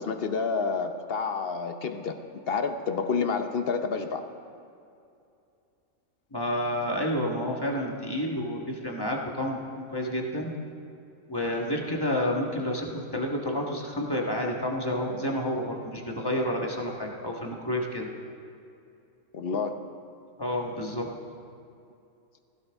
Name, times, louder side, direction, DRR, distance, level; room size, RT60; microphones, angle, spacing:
voice 1, 0.0-2.2 2.5-4.2 19.3-19.8, left 5 dB, 50° left, 7 dB, 0.9 m, -29 dB
voice 2, 6.3-10.5 11.3-18.1 20.4-21.1, left 1 dB, 20° left, -1 dB, 1.4 m, -30 dB
16.5 x 15.0 x 3.5 m, 2.6 s
omnidirectional pair, 1.4 m